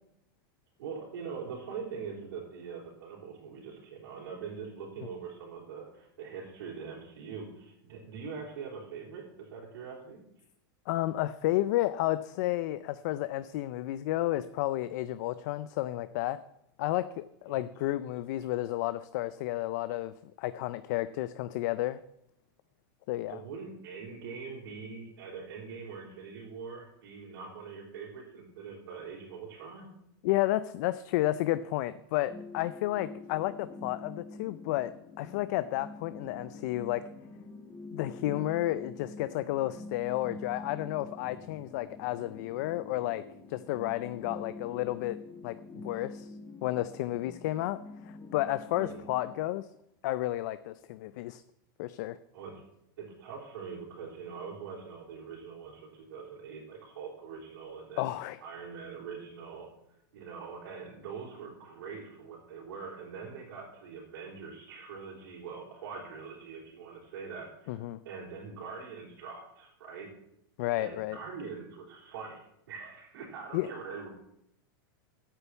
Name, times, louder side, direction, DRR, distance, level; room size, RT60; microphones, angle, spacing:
voice 1, 0.8-10.2 17.5-17.7 23.3-29.8 48.7-49.1 52.3-52.5 53.0-58.1 58.4-59.7 60.1-70.1 70.7-74.1, right 5 dB, 75° right, -6 dB, 4.1 m, -43 dB
voice 2, 10.9-16.4 16.8-22.0 23.1-23.4 30.2-37.0 37.9-43.2 43.5-45.2 45.4-46.3 46.6-49.7 50.0-51.4 51.8-52.2 58.0-58.4 67.7-68.0 70.6-71.2 73.5-73.7, left 15 dB, 50° left, 14 dB, 0.4 m, -32 dB
sound 1, 32.3-49.3, left 3 dB, 20° left, 1.5 m, -46 dB
9.1 x 6.9 x 8.1 m, 0.79 s
supercardioid pair, 165°, 12 cm